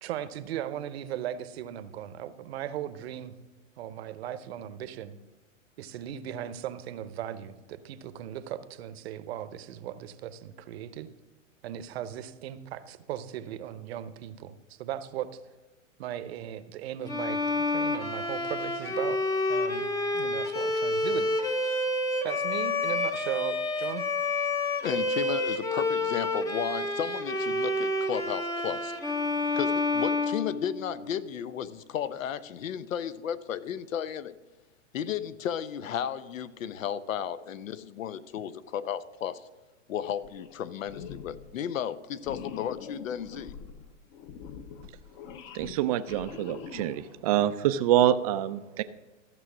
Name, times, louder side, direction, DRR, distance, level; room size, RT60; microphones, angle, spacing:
voice 1, 0.0-3.3 3.8-5.2 5.8-11.1 11.6-15.4 16.0-17.4 17.7-19.2 19.5-21.3 22.2-24.1, right 11 dB, 50° right, 13 dB, 0.8 m, -37 dB
Bowed string instrument, 17.1-31.1, left 2 dB, 10° left, 0.6 m, -29 dB
voice 2, 24.8-29.0 29.6-34.3 34.9-39.4 39.9-43.5, left 9 dB, 85° left, 16 dB, 0.8 m, -34 dB
sound 1, 40.2-40.6 40.8-41.5 42.2-47.2, left 7 dB, 35° left, 0.8 m, -44 dB
voice 3, 45.5-48.8, right 12 dB, 30° right, 12 dB, 0.4 m, -26 dB
14.0 x 6.3 x 6.0 m, 1.2 s
hypercardioid pair, 145°, 39 cm